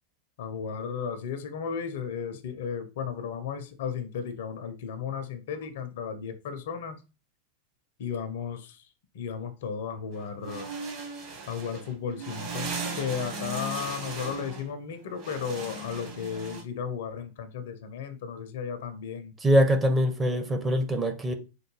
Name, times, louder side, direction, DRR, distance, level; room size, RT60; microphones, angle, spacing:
voice 1, 0.4-7.0 8.0-8.9 9.1-10.7 11.5-19.3, left 7 dB, 55° left, 0.5 m, -34 dB
sound 1, 10.1-16.6, right 3 dB, 45° right, 1.1 m, -37 dB
voice 2, 19.4-21.3, equal, 15° right, 0.5 m, -23 dB
4.4 x 2.2 x 3.1 m
figure-of-eight pair, 90°, 0 cm